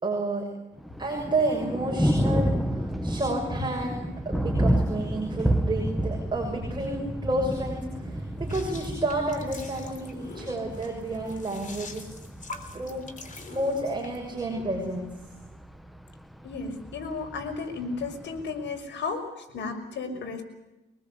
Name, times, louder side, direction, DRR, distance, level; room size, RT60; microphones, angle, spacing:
voice 1, 0.0-0.5 1.0-12.1 12.7-15.1 20.1-20.2, right 2 dB, 20° right, 0 dB, 6.6 m, -30 dB
Thunder, 0.8-18.8, equal, ahead, 1.3 m, -31 dB
sound 1, 8.4-14.2, left 3 dB, 40° left, 3.5 m, -44 dB
voice 2, 16.4-20.4, left 4 dB, 65° left, 5 dB, 5.7 m, -34 dB
24.0 x 20.0 x 8.4 m, 0.97 s
cardioid pair, 90°, 20 cm